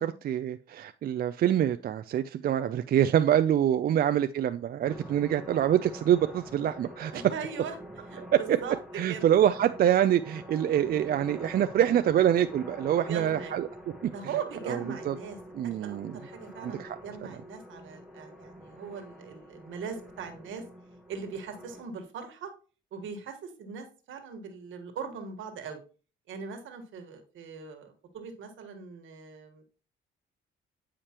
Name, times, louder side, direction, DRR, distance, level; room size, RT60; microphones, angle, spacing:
voice 1, 0.0-7.1 8.3-8.6 9.0-13.7 14.7-14.8 15.1-15.2 15.6-16.1 16.6-17.0, right 10 dB, 50° right, 10 dB, 0.4 m, -25 dB
sound 1, 4.8-21.8, equal, ahead, 1.4 m, -46 dB
voice 2, 7.1-7.7 8.1-8.8 9.1-9.3 13.1-13.5 14.1-20.6 21.1-22.5 22.9-25.8 26.3-29.6, right 6 dB, 75° right, 6 dB, 1.5 m, -40 dB
8.7 x 4.9 x 2.9 m, 0.37 s
cardioid pair, 90°, 20 cm